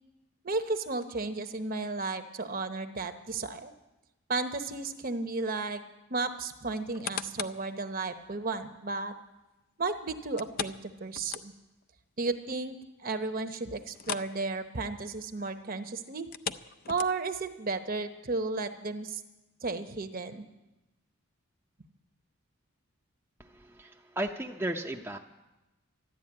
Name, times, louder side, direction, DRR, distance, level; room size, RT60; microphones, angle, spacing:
voice 1, 0.4-3.7 4.3-5.8 6.1-9.1 9.8-11.5 12.2-12.8 13.0-16.3 16.9-19.2 19.6-20.4, right 3 dB, 40° right, 8 dB, 0.9 m, -33 dB
sound 1, 6.7-7.7 8.2-8.3 10.4-11.8 12.2-12.3 12.7-12.8 13.9-14.4 14.6-14.9 16.2-17.4 18.1-18.2, left 7 dB, 40° left, 0.5 m, -38 dB
voice 2, 23.4-25.2, right 1 dB, 10° right, 0 dB, 0.6 m, -35 dB
12.5 x 12.5 x 8.7 m, 1.0 s
head